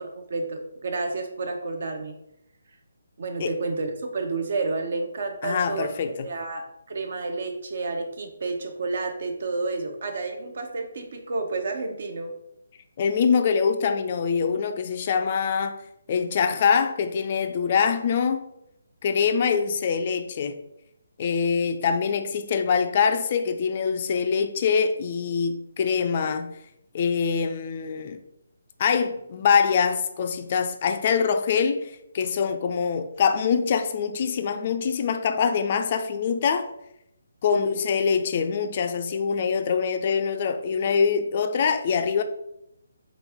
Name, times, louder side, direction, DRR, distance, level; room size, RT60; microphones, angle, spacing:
voice 1, 0.0-2.1 3.2-5.9 6.2-12.3 37.5-37.8, right 3 dB, 55° right, 0.7 m, -30 dB
voice 2, 5.4-6.3 13.0-15.8 16.1-18.4 19.0-20.6 21.2-26.6 26.9-28.2 28.8-36.7 37.4-42.2, left 6 dB, 40° left, 0.3 m, -24 dB
3.5 x 3.1 x 3.5 m
figure-of-eight pair, 150°, 0 cm